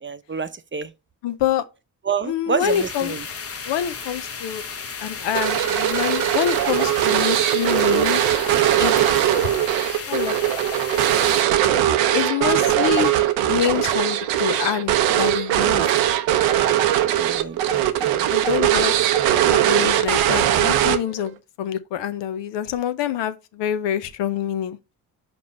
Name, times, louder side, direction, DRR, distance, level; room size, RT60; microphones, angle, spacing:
voice 1, 0.0-0.9 2.1-3.2 17.0-18.3, right 6 dB, 25° right, 0.7 m, -28 dB
voice 2, 1.2-1.6 2.2-3.1 3.6-4.6 5.0-8.5 8.8-8.9 9.4-9.5 10.1-10.4 12.1-13.1 13.5-15.9 18.2-19.0 19.5-24.8, left 10 dB, 70° left, 0.8 m, -26 dB
sound 1, 2.6-11.4, left 5 dB, 30° left, 0.9 m, -34 dB
sound 2, 5.3-21.3, right 12 dB, 80° right, 0.7 m, -20 dB
5.3 x 4.3 x 5.3 m
hypercardioid pair, 45°, 45 cm